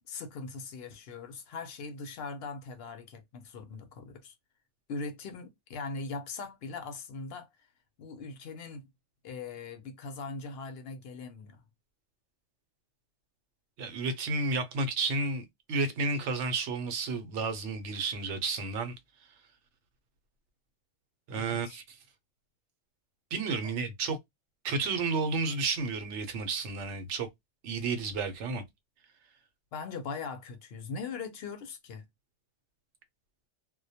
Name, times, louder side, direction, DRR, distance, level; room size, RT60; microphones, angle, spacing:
voice 1, 0.0-4.3 4.9-7.5 8.0-8.9 9.2-11.6 21.3-21.8 23.6-23.7 29.7-32.0, left 4 dB, 65° left, 0.7 m, -40 dB
voice 2, 13.8-18.9 21.3-22.0 23.3-24.2 24.6-27.3 27.6-28.6, right 3 dB, 80° right, 0.9 m, -31 dB
2.1 x 2.1 x 2.7 m
omnidirectional pair, 1.2 m